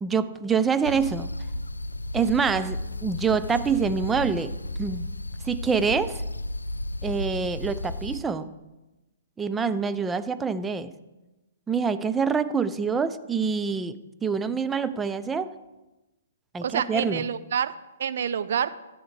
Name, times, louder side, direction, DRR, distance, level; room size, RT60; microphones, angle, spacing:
voice 1, 0.0-1.3 2.1-5.1 5.4-6.2 7.0-8.5 9.4-10.9 11.7-15.5 16.5-17.3, right 5 dB, 10° right, 12 dB, 0.5 m, -26 dB
sound 1, 0.8-8.2, left 1 dB, 90° left, 0.5 m, -33 dB
voice 2, 16.6-18.8, right 8 dB, 60° right, 13 dB, 0.6 m, -28 dB
13.5 x 9.4 x 3.4 m, 1.0 s
figure-of-eight pair, 125°, 0 cm